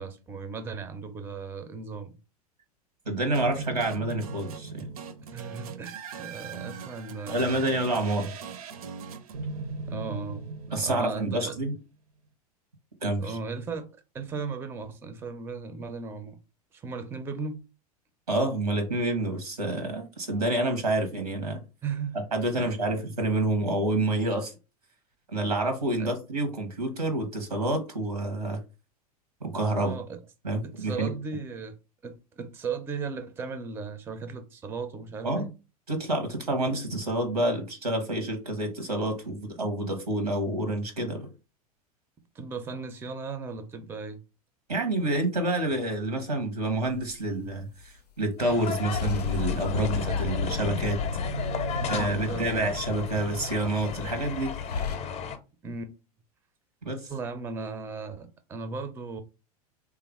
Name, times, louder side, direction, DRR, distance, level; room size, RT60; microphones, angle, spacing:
voice 1, 0.0-2.2 5.3-8.0 9.9-10.4 10.8-11.6 13.2-16.4 16.7-17.6 21.8-22.3 22.6-22.7 26.0-26.1 29.8-30.2 30.6-31.8 32.0-35.5 42.3-44.2 51.8-52.7 55.6-55.9 57.1-59.2, right 4 dB, 10° right, 0.4 m, -36 dB
voice 2, 3.1-4.9 7.3-8.3 10.7-11.7 13.0-13.4 18.3-21.6 22.3-24.5 25.3-28.6 29.4-30.0 30.4-31.1 35.2-35.5 35.9-41.3 44.7-51.0 51.9-54.5 56.8-57.1, right 2 dB, 85° right, 0.9 m, -28 dB
sound 1, 3.3-11.6, right 4 dB, 65° right, 0.5 m, -39 dB
sound 2, 46.9-47.5 48.9-55.0, left 4 dB, 85° left, 0.5 m, -32 dB
sound 3, 48.4-55.4, left 7 dB, 35° left, 0.6 m, -35 dB
3.3 x 2.4 x 3.3 m
figure-of-eight pair, 90°, 20 cm